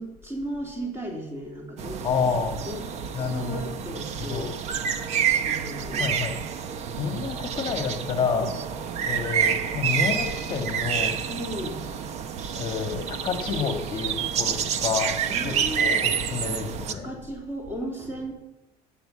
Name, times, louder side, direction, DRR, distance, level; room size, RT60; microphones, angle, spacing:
voice 1, 0.0-2.0 2.6-2.8 3.1-4.5 5.4-6.1 8.3-8.5 11.3-11.9 15.3-16.0 16.9-18.4, right 1 dB, 15° right, 0 dB, 3.6 m, -35 dB
sound 1, 1.8-16.9, right 8 dB, 40° right, 1.0 m, -28 dB
voice 2, 2.0-2.6 3.1-3.7 4.2-4.5 5.9-6.3 7.0-8.5 9.1-11.2 12.5-15.1 15.4-17.1, left 6 dB, 30° left, 5 dB, 1.6 m, -29 dB
19.0 x 9.2 x 7.8 m, 1.0 s
cardioid pair, 180°, 16 cm